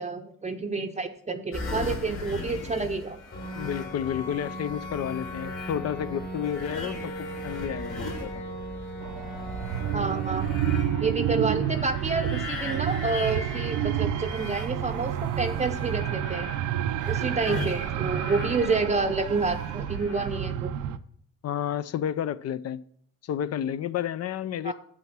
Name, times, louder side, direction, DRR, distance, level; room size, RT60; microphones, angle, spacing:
voice 1, 0.0-3.2 9.9-10.5 11.0-16.5 17.1-20.7 24.6-24.7, right 3 dB, 25° right, 7 dB, 0.7 m, -29 dB
sound 1, 1.5-8.9 9.5-18.8 19.3-20.3, left 3 dB, 80° left, 3.2 m, -40 dB
sound 2, 3.3-11.7, equal, 40° left, 3.2 m, -38 dB
voice 2, 3.5-8.4 17.5-17.7 21.4-22.8 23.2-24.7, left 9 dB, 55° left, 16 dB, 0.5 m, -31 dB
sound 3, 9.0-21.0, right 10 dB, 90° right, 0.6 m, -29 dB
7.5 x 6.3 x 6.0 m, 0.64 s
cardioid pair, 90°, 30 cm